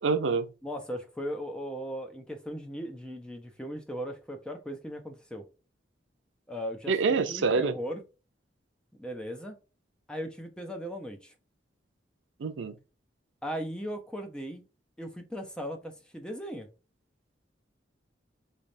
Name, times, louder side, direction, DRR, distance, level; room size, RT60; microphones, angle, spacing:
voice 1, 0.0-0.5 6.9-7.7 12.4-12.7, right 4 dB, 90° right, 0.5 m, -26 dB
voice 2, 0.6-5.4 6.5-8.0 9.0-9.6 10.1-11.3 13.4-14.6 15.0-16.7, equal, 5° left, 0.6 m, -38 dB
3.9 x 3.3 x 2.6 m
head